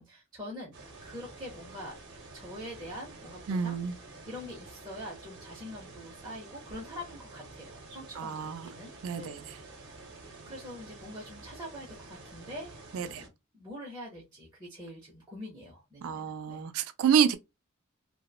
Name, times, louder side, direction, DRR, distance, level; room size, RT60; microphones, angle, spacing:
voice 1, 0.0-2.0 2.3-3.8 4.2-8.9 9.2-9.8 10.5-16.7, left 1 dB, 20° right, 0.6 m, -44 dB
sound 1, 0.7-13.3, right 3 dB, 60° right, 0.7 m, -49 dB
voice 2, 3.5-3.9 8.2-8.7 9.0-9.6 12.9-13.2 16.0-17.4, right 7 dB, 85° right, 0.3 m, -28 dB
2.9 x 2.1 x 2.3 m
head